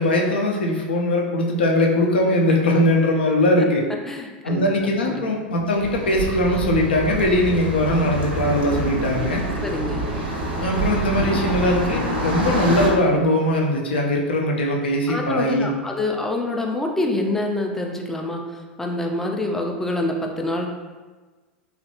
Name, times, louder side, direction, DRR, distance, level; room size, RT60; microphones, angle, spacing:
voice 1, 0.0-3.9 4.4-9.4 10.6-15.7, left 1 dB, 70° left, 0 dB, 0.5 m, -20 dB
voice 2, 4.1-5.2 9.6-10.1 15.1-20.7, left 2 dB, 5° left, 1 dB, 0.4 m, -26 dB
sound 1, 5.8-12.9, right 2 dB, 70° right, 0.6 m, -26 dB
3.0 x 2.4 x 2.7 m, 1.3 s
figure-of-eight pair, 85°, 6 cm